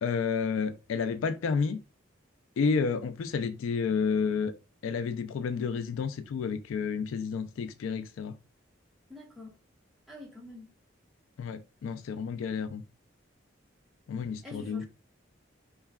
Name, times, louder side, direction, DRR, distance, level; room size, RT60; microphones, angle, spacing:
voice 1, 0.0-1.8 2.6-4.5 4.8-8.4 11.4-12.8 14.1-14.9, left 5 dB, 85° left, 0.3 m, -30 dB
voice 2, 9.1-9.6 10.1-10.7 14.4-14.9, left 2 dB, ahead, 0.6 m, -46 dB
2.2 x 2.2 x 3.4 m
head